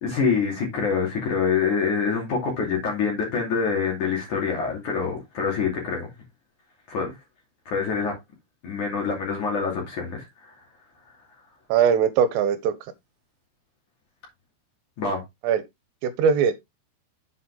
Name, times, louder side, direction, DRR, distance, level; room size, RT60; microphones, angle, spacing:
voice 1, 0.0-6.1 6.9-7.1 7.6-8.1 8.6-10.5 15.0-15.2, left 5 dB, 45° left, 3.4 m, -26 dB
voice 2, 11.7-12.8 15.4-15.6 16.0-16.5, right 7 dB, 80° right, 3.2 m, -20 dB
8.1 x 5.6 x 3.5 m
omnidirectional pair, 6.0 m